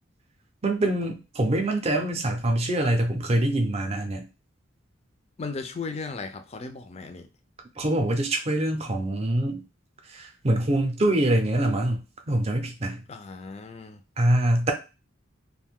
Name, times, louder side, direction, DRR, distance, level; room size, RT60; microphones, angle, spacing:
voice 1, 0.6-4.2 7.8-9.6 10.1-13.0 14.2-14.7, right 1 dB, 30° right, 0.5 m, -24 dB
voice 2, 5.4-7.3 13.1-14.0, left 4 dB, 30° left, 0.4 m, -36 dB
2.6 x 2.2 x 3.5 m
head